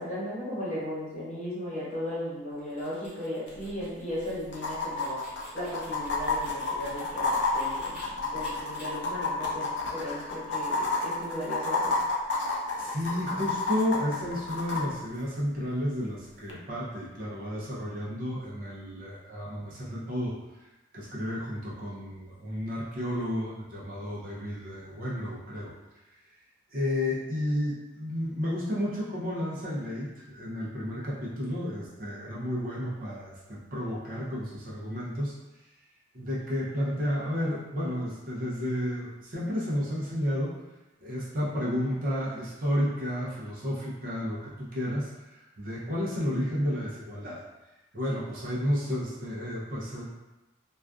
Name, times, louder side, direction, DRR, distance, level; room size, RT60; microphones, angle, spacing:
voice 1, 0.0-5.2 5.5-12.0, left 1 dB, 35° left, -10 dB, 1.1 m, -36 dB
sound 1, 2.5-8.0 8.4-8.8, equal, 10° right, 0.9 m, -52 dB
sound 2, 3.5-3.6 3.8-3.9 4.5-14.8 16.5-16.6, left 3 dB, 60° left, 0.4 m, -30 dB
voice 2, 12.8-20.4 20.9-25.7 26.7-35.3 36.1-40.5 41.0-47.4 47.9-50.0, equal, 45° right, -6 dB, 0.5 m, -32 dB
2.4 x 2.3 x 2.3 m, 1.0 s
head